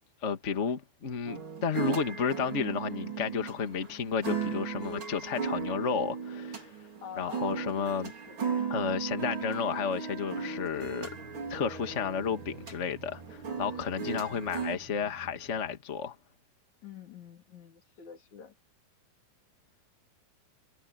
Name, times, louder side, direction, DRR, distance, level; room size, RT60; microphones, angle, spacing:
voice 1, 0.2-6.7 7.2-8.1 8.7-11.1 11.5-16.1, left 6 dB, 75° left, 0.6 m, -32 dB
sound 1, 1.3-14.8, right 6 dB, 35° right, 3.5 m, -36 dB
voice 2, 7.0-8.0 8.3-8.4 13.9-14.5 16.8-18.5, left 8 dB, 50° left, 4.0 m, -47 dB
sound 2, 10.7-15.8, right 4 dB, 85° right, 8.5 m, -51 dB
omnidirectional pair, 4.4 m